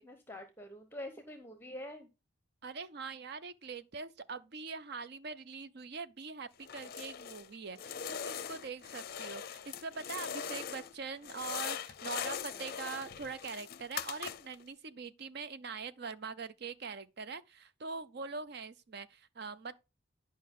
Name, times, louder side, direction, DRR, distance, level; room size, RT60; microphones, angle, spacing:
voice 1, 0.0-2.1 12.5-12.7, left 1 dB, 10° left, 0.8 m, -46 dB
voice 2, 2.6-19.7, right 4 dB, 55° right, 0.6 m, -43 dB
sound 1, 6.6-7.5 7.8-10.9 11.2-14.6, left 8 dB, 50° left, 0.5 m, -41 dB
10.5 x 5.3 x 3.7 m
head